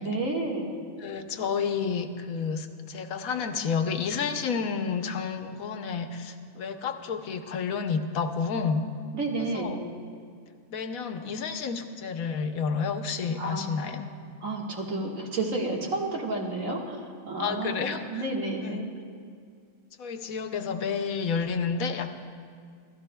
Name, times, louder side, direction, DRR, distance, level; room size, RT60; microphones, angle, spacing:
voice 1, 0.0-0.7 9.1-9.8 13.4-14.0 14.4-18.9, right 2 dB, 65° right, -1 dB, 2.0 m, -31 dB
voice 2, 1.0-8.8 9.5-9.8 10.7-14.0 17.4-18.2 18.6-18.8 20.0-22.1, left 5 dB, 75° left, 7 dB, 1.2 m, -30 dB
27.5 x 13.5 x 2.2 m, 2.2 s
omnidirectional pair, 1.5 m